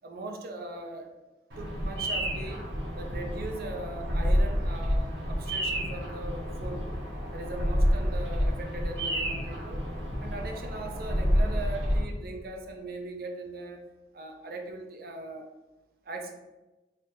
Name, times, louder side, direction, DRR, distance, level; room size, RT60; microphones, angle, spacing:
voice 1, 0.0-1.1 1.6-2.7 2.9-6.8 7.3-9.9 10.2-13.8 14.1-15.5 16.0-16.3, right 2 dB, 55° right, 3 dB, 0.5 m, -39 dB
Bird vocalization bird call bird song, 1.5-12.0, equal, 80° right, 1.1 m, -29 dB
3.2 x 2.4 x 4.3 m, 1.1 s
head